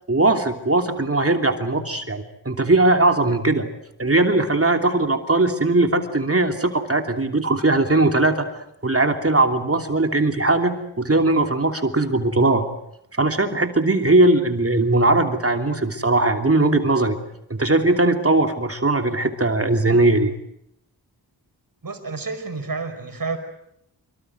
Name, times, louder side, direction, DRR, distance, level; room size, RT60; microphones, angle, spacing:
voice 1, 0.1-3.6 4.0-8.5 8.8-12.6 13.1-17.1 17.5-20.3, right 2 dB, 30° right, 5 dB, 3.0 m, -19 dB
voice 2, 21.8-23.4, right 4 dB, 50° right, 6 dB, 5.3 m, -29 dB
25.5 x 24.0 x 8.0 m, 0.78 s
cardioid pair, 55°, 43 cm